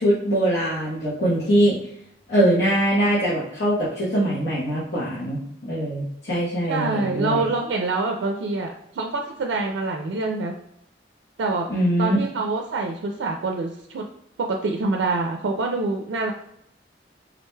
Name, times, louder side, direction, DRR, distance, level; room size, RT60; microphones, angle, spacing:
voice 1, 0.0-1.8 2.3-7.4 11.7-12.2, right 1 dB, 80° left, -8 dB, 0.9 m, -22 dB
voice 2, 6.7-10.5 11.4-11.7 12.0-14.0 14.4-16.3, right 3 dB, 90° right, 2 dB, 0.4 m, -26 dB
3.7 x 2.2 x 3.1 m, 0.77 s
head